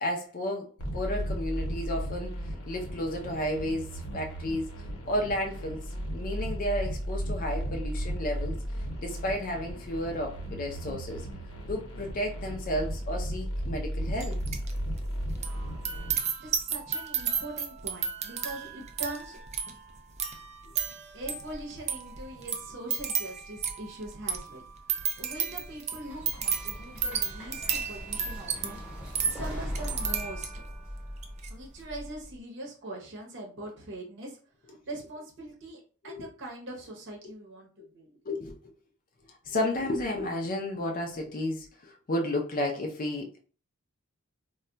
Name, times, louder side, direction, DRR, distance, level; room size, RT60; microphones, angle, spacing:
voice 1, 0.0-4.7 5.0-5.8 6.1-8.6 9.0-11.3 11.7-14.4 36.0-36.3 38.2-38.7 39.5-43.4, left 1 dB, 40° left, 2 dB, 0.5 m, -32 dB
sound 1, 0.8-16.1, equal, 90° left, 0.8 m, -35 dB
sound 2, 14.2-14.7 15.0-30.7 31.2-31.5, right 7 dB, 30° right, 0.4 m, -33 dB
voice 2, 15.3-15.8 16.4-19.4 21.1-24.6 24.9-30.6 31.5-34.4 34.9-38.2, right 1 dB, 60° right, -1 dB, 0.8 m, -42 dB
sound 3, 25.1-32.4, equal, 5° right, 0.9 m, -40 dB
2.2 x 2.1 x 3.8 m, 0.39 s
head